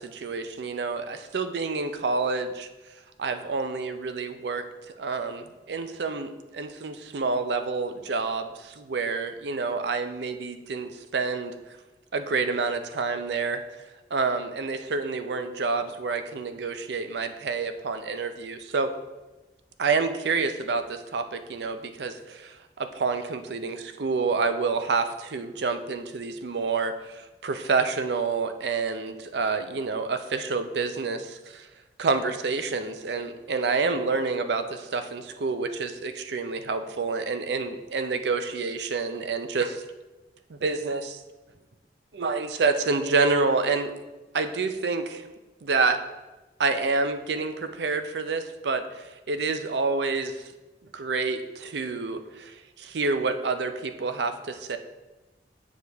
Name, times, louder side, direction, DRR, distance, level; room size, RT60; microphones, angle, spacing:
voice 1, 0.0-2.7 3.2-4.7 5.0-11.5 12.1-13.6 14.1-18.9 19.8-31.7 32.0-39.8 40.5-41.2 42.1-43.9 44.3-45.3 45.6-46.0 46.6-50.5 50.9-54.8, right 4 dB, 75° right, 9 dB, 0.5 m, -28 dB
8.1 x 4.9 x 3.4 m, 1.1 s
head